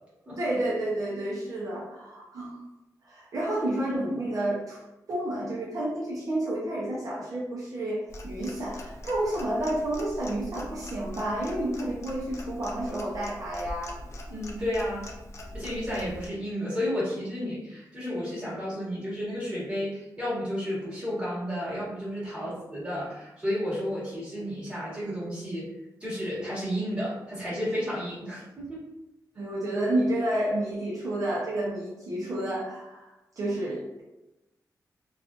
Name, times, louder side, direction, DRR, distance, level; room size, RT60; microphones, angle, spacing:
voice 1, 0.4-2.6 3.0-4.8 5.1-13.9 22.4-22.5 29.4-33.1 33.4-34.0, right 1 dB, 60° right, -6 dB, 0.7 m, -30 dB
Clock, 8.1-16.3, left 1 dB, 45° left, 0.4 m, -42 dB
voice 2, 14.3-15.1 15.5-25.7 26.0-28.8, equal, 15° right, -8 dB, 1.3 m, -32 dB
3.6 x 2.4 x 2.4 m, 0.97 s
wide cardioid pair, 155°, 7 cm